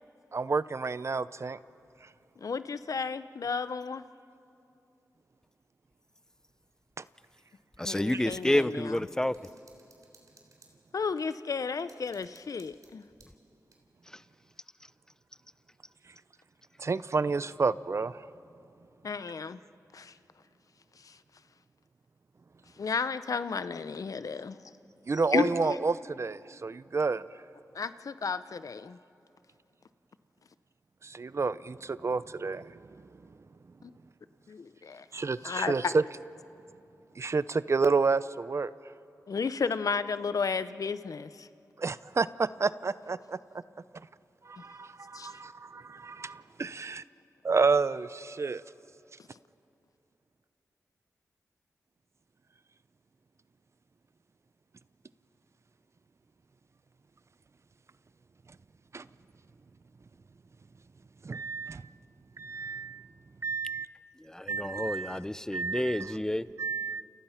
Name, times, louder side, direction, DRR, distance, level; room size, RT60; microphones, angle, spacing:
voice 1, 0.3-1.6 7.0-7.1 16.8-18.2 25.1-27.2 31.0-32.8 35.1-36.0 37.2-38.7 41.8-43.4 44.5-47.0 47.4-48.6 58.9-59.1 61.2-61.8 62.4-63.1 63.4-63.9 64.5-65.2 65.5-66.1 66.6-67.0, right 4 dB, 50° right, 16 dB, 0.6 m, -30 dB
voice 2, 2.4-4.0 7.8-9.0 10.9-13.0 19.0-19.6 19.9-20.1 21.0-21.2 22.8-24.6 25.3-25.8 27.7-29.0 33.8-33.9 34.5-35.1 35.4-35.9 39.3-41.5 45.1-45.3, left 5 dB, 65° left, 13 dB, 0.8 m, -33 dB
voice 3, 7.8-9.3 64.2-66.4, left 1 dB, 10° left, 15 dB, 0.6 m, -29 dB
sound 1, 9.3-11.4 11.9-13.8, right 3 dB, 65° right, 3.4 m, -61 dB
29.5 x 29.5 x 5.8 m, 2.7 s
wide cardioid pair, 70°, 6 cm